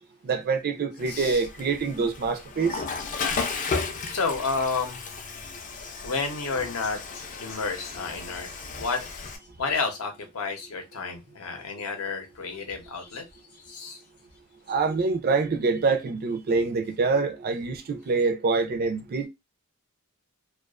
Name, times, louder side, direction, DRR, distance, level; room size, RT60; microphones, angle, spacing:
voice 1, 0.2-2.8 14.7-19.3, right 4 dB, 45° right, 0.4 m, -25 dB
Water / Toilet flush, 1.0-9.4, left 4 dB, 35° left, 0.4 m, -34 dB
voice 2, 1.1-1.4 3.4-5.0 6.0-8.5 8.8-9.1 9.6-13.2 13.6-14.0, left 4 dB, 75° left, 0.7 m, -31 dB
2.3 x 2.3 x 2.3 m
head